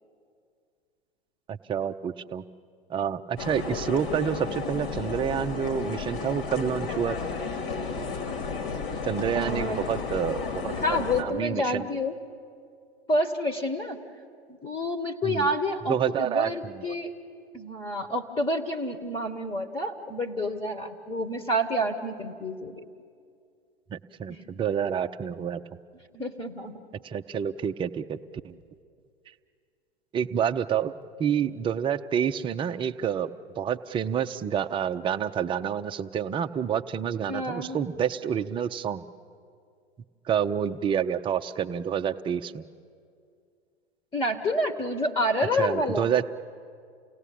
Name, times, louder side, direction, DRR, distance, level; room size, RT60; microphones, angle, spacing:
voice 1, 1.5-2.4 2.9-7.2 9.0-11.9 15.2-15.5 15.9-16.9 23.9-25.6 27.0-28.2 28.4-28.5 30.1-30.9 31.2-33.3 33.6-39.0 40.3-42.6 45.6-46.2, right 8 dB, 15° right, 8 dB, 0.6 m, -28 dB
sound 1, 3.4-11.2, left 4 dB, 55° left, 2.6 m, -33 dB
voice 2, 9.3-9.8 10.7-12.2 13.1-14.0 14.5-17.1 17.5-22.8 24.3-24.4 26.1-26.8 37.3-37.8 44.1-46.1, left 1 dB, 15° left, 7 dB, 1.4 m, -29 dB
28.5 x 18.0 x 8.5 m, 2.3 s
figure-of-eight pair, 100°, 32 cm